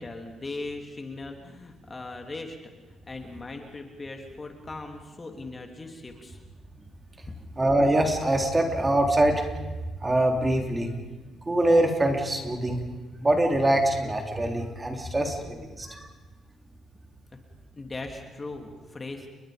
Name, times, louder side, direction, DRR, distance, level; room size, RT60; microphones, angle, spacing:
voice 1, 0.0-2.7 3.1-6.4 17.7-19.3, left 2 dB, 25° left, 4 dB, 3.1 m, -39 dB
voice 2, 7.6-9.4 10.0-10.9 11.5-12.8 13.2-16.0, right 1 dB, 20° right, 3 dB, 3.4 m, -23 dB
29.5 x 22.0 x 5.2 m, 1.3 s
cardioid pair, 90°, 0 cm